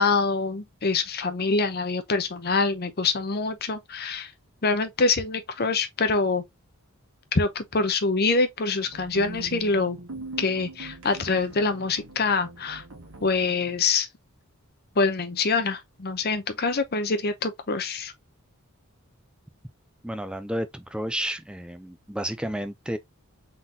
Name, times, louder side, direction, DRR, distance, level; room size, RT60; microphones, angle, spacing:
voice 1, 0.0-4.3 4.6-6.4 7.3-10.0 10.4-12.8 13.2-14.1 15.0-18.1, left 4 dB, 45° left, 0.7 m, -25 dB
sound 1, 8.8-13.8, right 2 dB, 70° right, 1.4 m, -42 dB
voice 2, 20.0-23.0, right 1 dB, 5° right, 0.5 m, -31 dB
3.8 x 3.8 x 2.8 m
head